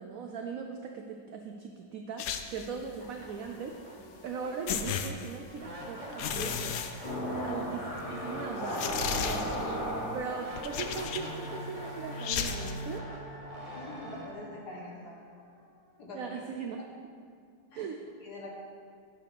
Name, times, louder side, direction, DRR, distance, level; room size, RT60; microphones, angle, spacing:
voice 1, 0.0-4.0 4.2-6.9 7.4-8.9 9.2-9.6 10.1-13.1 16.1-16.8 17.7-18.0, right 5 dB, 80° right, 3 dB, 0.7 m, -39 dB
sound 1, 2.2-2.8 4.2-4.3 4.7-5.7 6.1-7.6 8.0-8.1 8.7-9.8 10.5-11.5 12.2-12.8, left 7 dB, 80° left, 0.8 m, -34 dB
sound 2, 2.5-2.6 3.0-16.0, equal, 25° right, 0.8 m, -46 dB
sound 3, 7.0-14.2, equal, 25° left, 1.5 m, -37 dB
voice 2, 13.7-15.2 16.0-16.3 17.7-17.8 18.2-18.5, left 2 dB, 60° left, -2 dB, 1.8 m, -44 dB
9.8 x 6.5 x 4.1 m, 2.1 s
omnidirectional pair, 2.0 m